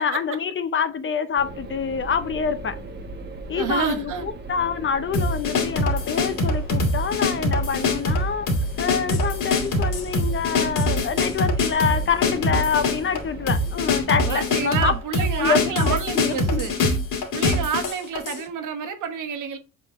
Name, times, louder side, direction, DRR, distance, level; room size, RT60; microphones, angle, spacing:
voice 1, 0.0-2.8 3.5-8.5 8.8-14.9 15.4-16.6, left 6 dB, 35° left, 0.6 m, -26 dB
sound 1, 1.4-14.0, right 2 dB, 30° right, 1.2 m, -38 dB
voice 2, 3.5-4.3 14.3-16.7 17.3-19.6, right 7 dB, 60° right, 1.3 m, -28 dB
sound 2, 5.1-18.4, left 2 dB, 65° left, 2.2 m, -24 dB
7.2 x 4.6 x 3.0 m
cardioid pair, 165°, 35 cm